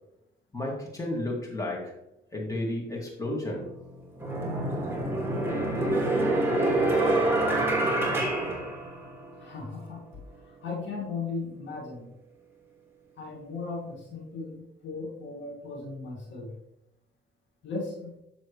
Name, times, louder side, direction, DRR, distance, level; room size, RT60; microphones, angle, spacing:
voice 1, 0.5-1.9 2.3-3.7, left 1 dB, 15° left, -2 dB, 2.6 m, -32 dB
sound 1, 3.4-3.6 4.2-9.4, right 2 dB, 10° right, 2.4 m, -26 dB
voice 2, 9.4-10.0 10.6-12.1 13.2-16.5 17.6-18.1, left 4 dB, 70° left, -1 dB, 2.2 m, -36 dB
7.6 x 7.0 x 3.3 m, 0.82 s
cardioid pair, 90°, 20 cm